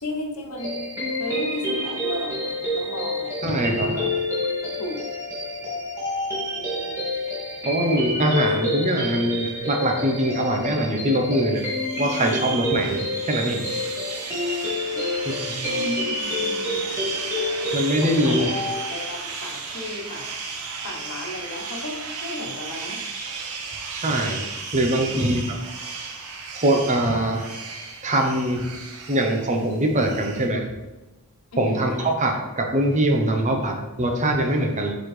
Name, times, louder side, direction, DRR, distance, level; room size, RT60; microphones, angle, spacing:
voice 1, 0.0-0.9 1.2-5.1 6.5-7.1 14.9-15.1 15.6-16.9 18.0-18.5 18.9-20.3 20.8-23.1 25.1-25.5 31.5-32.2, left 2 dB, 80° left, 0 dB, 1.2 m, -35 dB
sound 1, 0.6-18.9, left 1 dB, 15° right, 2.0 m, -28 dB
voice 2, 3.4-3.9 7.7-11.6 12.0-13.6 15.5-15.7 17.7-18.5 23.9-24.4 24.7-25.4 26.5-27.4 28.0-28.6 29.1-30.6 31.6-34.9, right 1 dB, 35° right, 3 dB, 0.8 m, -22 dB
sound 2, 11.6-30.5, right 5 dB, 90° right, 0.9 m, -35 dB
7.5 x 4.1 x 3.3 m, 1.1 s
head